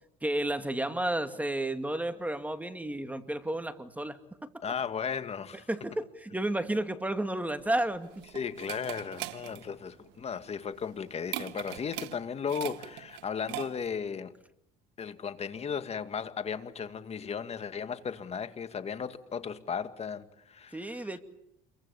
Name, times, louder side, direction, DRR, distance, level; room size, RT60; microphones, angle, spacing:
voice 1, 0.2-4.5 5.7-8.1 20.7-21.2, right 1 dB, 10° right, 2.4 m, -32 dB
voice 2, 4.6-5.7 8.3-14.3 15.0-21.0, left 6 dB, 35° left, 2.2 m, -35 dB
sound 1, 7.6-14.1, right 16 dB, 85° right, 1.6 m, -42 dB
28.5 x 23.5 x 7.2 m
supercardioid pair, 95°, 18 cm